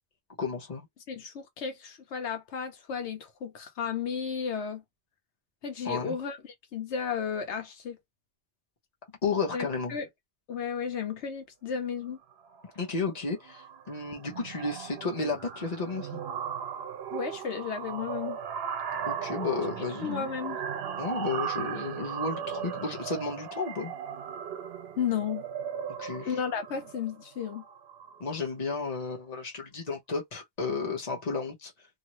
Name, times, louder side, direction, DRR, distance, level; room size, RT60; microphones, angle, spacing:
voice 1, 0.4-0.9 5.8-6.1 9.2-10.0 12.7-16.2 19.0-20.3 21.0-23.9 26.0-26.3 28.2-31.7, left 4 dB, 40° left, 1.1 m, -33 dB
voice 2, 1.1-4.8 5.6-8.0 9.5-10.1 10.5-12.2 17.1-18.4 20.0-20.6 25.0-25.5 26.2-27.6, left 7 dB, 80° left, 1.1 m, -33 dB
sound 1, 12.3-12.6 12.9-13.2 13.4-28.3, right 8 dB, 65° right, 0.9 m, -37 dB
2.7 x 2.6 x 3.0 m
omnidirectional pair, 1.1 m